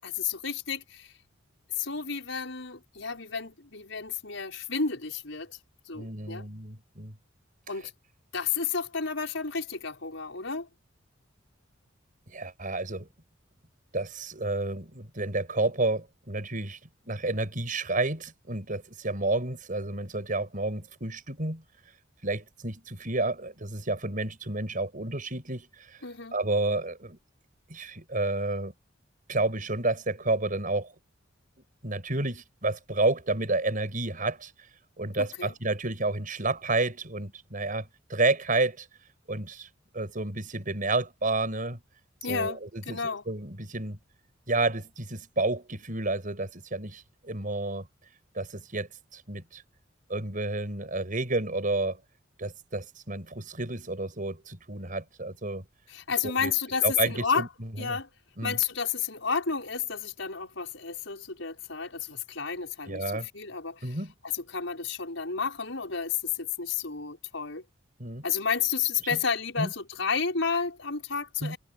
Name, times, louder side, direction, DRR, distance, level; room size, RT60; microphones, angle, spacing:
voice 1, 0.0-1.1 1.7-5.6 5.9-6.5 7.7-7.9 8.3-10.7 26.0-26.4 35.2-35.5 42.2-42.6 42.9-43.2 55.9-57.5 57.8-58.1 58.4-63.9 64.3-67.7 68.2-71.6, left 6 dB, 80° left, 5.5 m, -31 dB
voice 2, 5.9-7.1 12.3-13.1 13.9-16.8 17.1-21.6 22.2-26.0 26.3-27.2 27.7-28.7 29.3-30.9 31.8-34.5 35.0-38.9 39.3-39.7 39.9-41.8 42.3-44.0 44.5-47.9 48.3-49.6 50.1-52.0 52.4-55.7 56.2-56.5 56.8-58.0 58.4-58.6 62.8-63.3 63.8-64.1 68.0-68.3 69.0-69.2 69.6-69.7 71.4-71.6, right 2 dB, 45° right, 5.6 m, -30 dB
head